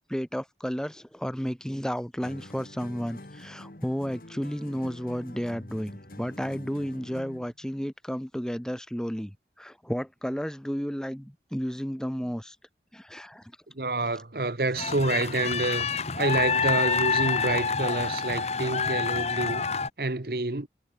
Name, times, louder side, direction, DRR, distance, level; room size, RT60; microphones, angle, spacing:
voice 1, 0.0-12.6 12.9-13.5, equal, 5° left, 1.1 m, -32 dB
sound 1, 2.2-7.5, left 1 dB, 55° left, 2.0 m, -45 dB
voice 2, 13.7-15.9 16.2-19.6 20.0-20.7, right 2 dB, 55° right, 1.4 m, -28 dB
sound 2, 14.7-19.9, left 5 dB, 35° left, 1.0 m, -27 dB
head